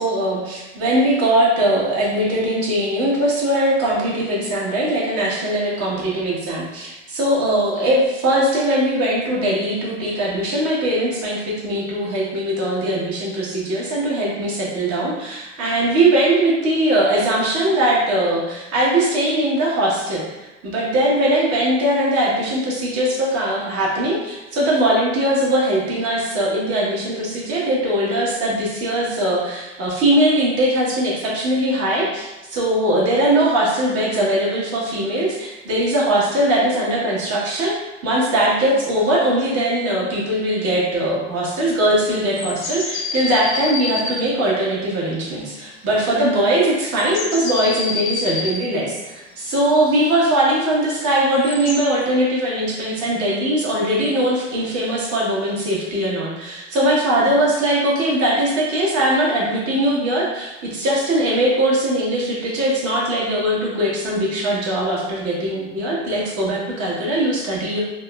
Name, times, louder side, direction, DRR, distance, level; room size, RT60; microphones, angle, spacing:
voice 1, 0.0-20.2 20.6-37.7 38.0-67.8, right 1 dB, 45° right, -5 dB, 1.1 m, -20 dB
sound 1, 42.3-44.2 45.3-45.7 46.0-46.2 46.9-48.6 51.1-51.8, left 4 dB, 45° left, 0.6 m, -27 dB
3.4 x 2.0 x 2.3 m, 1.0 s
hypercardioid pair, 75°, 35 cm